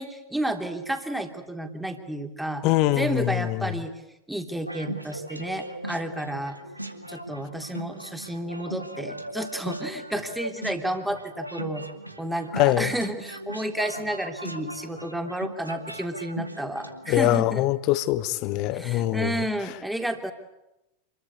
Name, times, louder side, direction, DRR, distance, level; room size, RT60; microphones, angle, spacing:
voice 1, 0.0-2.6 3.0-3.9 4.3-6.6 7.1-11.9 12.2-17.6 18.7-20.3, right 1 dB, 5° right, 3.2 m, -31 dB
voice 2, 2.6-3.7 12.5-12.9 17.1-19.3, left 15 dB, 40° left, 1.4 m, -23 dB
sound 1, 4.6-17.4, right 1 dB, 90° right, 2.5 m, -38 dB
28.0 x 22.5 x 8.4 m
figure-of-eight pair, 90°, 0 cm